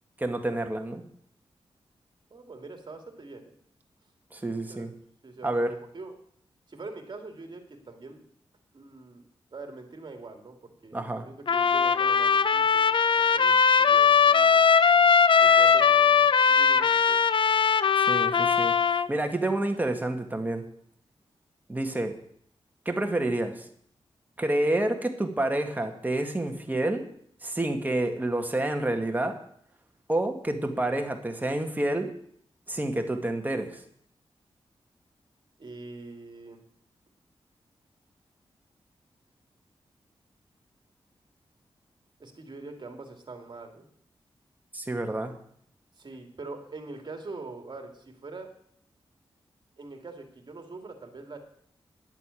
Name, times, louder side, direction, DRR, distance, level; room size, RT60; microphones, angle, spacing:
voice 1, 0.2-1.0 4.3-4.9 5.4-5.7 10.9-11.3 18.1-18.7 19.1-20.6 21.7-22.1 22.9-23.7 24.4-27.0 27.4-29.4 30.1-32.1 32.7-33.8 44.7-45.3, right 1 dB, 15° right, 4 dB, 1.8 m, -28 dB
voice 2, 2.3-3.5 4.7-4.9 5.2-6.1 6.7-8.2 8.7-14.6 15.4-17.2 35.6-36.6 42.2-43.9 46.0-48.5 49.8-51.4, right 3 dB, 50° right, 5 dB, 2.5 m, -44 dB
Trumpet, 11.5-19.1, left 6 dB, 55° left, 0.6 m, -20 dB
11.0 x 8.3 x 8.4 m, 0.65 s
wide cardioid pair, 95°, 10 cm